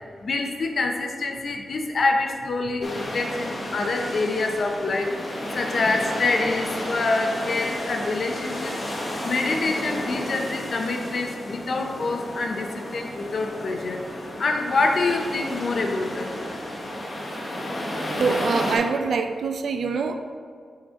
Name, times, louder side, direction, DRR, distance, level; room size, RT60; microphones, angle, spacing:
voice 1, 0.2-5.1 5.5-8.7 9.2-14.1 14.4-16.3, left 3 dB, 45° left, 3 dB, 0.6 m, -26 dB
sound 1, 2.8-18.8, left 1 dB, 30° left, 0.9 m, -32 dB
voice 2, 18.2-20.2, right 5 dB, 65° right, 7 dB, 0.4 m, -24 dB
6.2 x 4.8 x 3.6 m, 2.1 s
wide cardioid pair, 180°, 0 cm